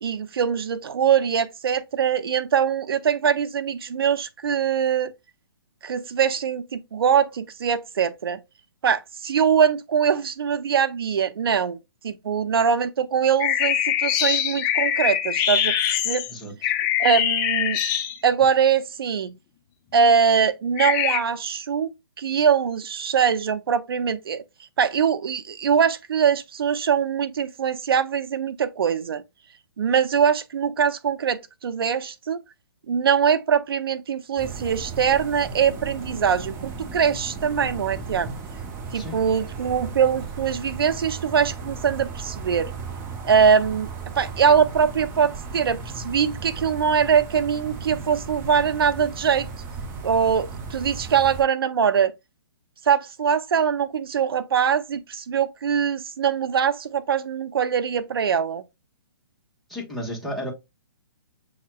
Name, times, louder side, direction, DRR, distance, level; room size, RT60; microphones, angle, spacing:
voice 1, 0.0-5.1 5.8-8.4 8.8-11.8 12.0-15.8 16.0-16.3 17.0-17.8 18.2-19.3 19.9-21.9 22.2-24.4 24.8-29.2 29.8-32.4 32.9-38.3 38.9-42.7 43.2-43.9 44.2-49.5 50.0-52.1 52.9-58.6, right 7 dB, 75° right, 0.6 m, -22 dB
sound 1, 13.4-18.4 20.8-21.2, left 10 dB, 25° left, 0.4 m, -23 dB
sound 2, 34.4-51.4, right 4 dB, 20° right, 0.6 m, -36 dB
voice 2, 59.7-60.5, equal, ahead, 1.4 m, -32 dB
7.2 x 2.8 x 2.2 m
hypercardioid pair, 140°, 13 cm